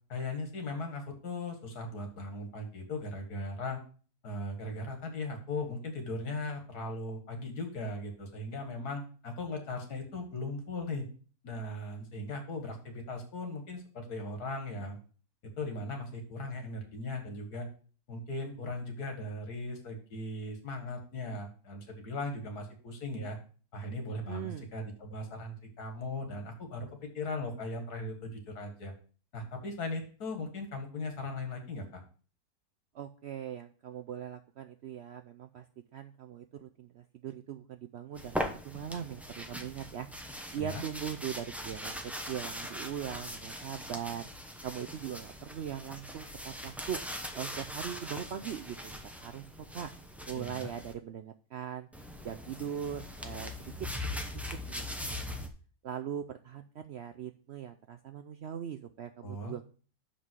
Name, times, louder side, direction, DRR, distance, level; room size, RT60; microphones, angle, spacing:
voice 1, 0.1-3.8 4.2-11.1 11.4-15.0 15.6-17.7 18.1-23.4 23.7-26.9 27.1-28.9 29.3-32.0 40.6-40.8 50.3-50.7 59.2-59.6, left 2 dB, 80° left, 4 dB, 2.2 m, -38 dB
voice 2, 24.3-24.7 32.9-35.7 35.9-40.1 40.5-44.3 44.6-47.0 47.3-49.9 50.3-51.9 52.2-53.7 54.0-54.3 54.7-55.4 55.8-59.6, right 9 dB, 70° right, 7 dB, 0.6 m, -40 dB
sound 1, 38.2-50.9 51.9-55.5, left 1 dB, ahead, 0.5 m, -41 dB
6.4 x 5.4 x 6.2 m, 0.40 s
omnidirectional pair, 1.6 m